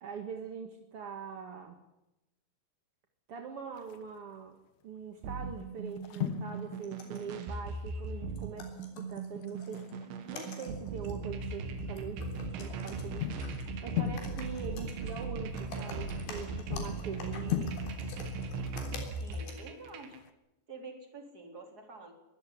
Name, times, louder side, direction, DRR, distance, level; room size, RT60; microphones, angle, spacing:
voice 1, 0.0-1.8 3.3-4.6 4.8-10.0 10.3-12.3 12.6-13.3 13.8-17.8, right 6 dB, 55° right, 4 dB, 1.7 m, -43 dB
sound 1, 3.7-4.3 5.0-5.2 5.5-8.2 8.5-8.6 8.9-9.0 9.4-11.5 12.0-20.3, left 10 dB, 60° left, 2.0 m, -40 dB
sound 2, 5.2-20.2, right 3 dB, 90° right, 4.2 m, -39 dB
sound 3, 6.6-7.5 8.0-8.1 8.4-10.0 10.3-11.2 11.5-11.6 12.0-13.1 13.4-13.6 14.1-15.2 15.4-19.6, left 4 dB, 85° left, 5.8 m, -48 dB
voice 2, 19.2-20.1 20.7-22.1, right 3 dB, 20° right, 4 dB, 3.8 m, -47 dB
23.0 x 14.0 x 10.0 m, 0.93 s
omnidirectional pair, 5.0 m